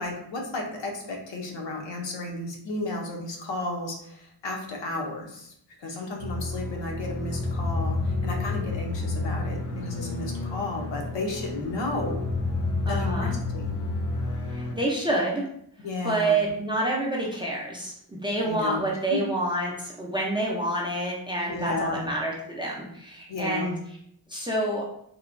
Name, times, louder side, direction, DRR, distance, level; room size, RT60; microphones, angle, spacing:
voice 1, 0.0-5.5 5.8-12.3 12.9-13.7 15.8-16.5 18.4-18.8 19.1-19.2 21.5-22.1 23.3-23.8, left 2 dB, 85° left, 1 dB, 0.7 m, -33 dB
sound 1, 6.2-14.7, left 2 dB, 45° left, 0.5 m, -30 dB
voice 2, 12.9-13.3 14.5-15.4 16.0-23.7 24.3-24.9, right 1 dB, 15° right, -3 dB, 0.3 m, -28 dB
2.9 x 2.1 x 2.4 m, 0.71 s
wide cardioid pair, 155°, 43 cm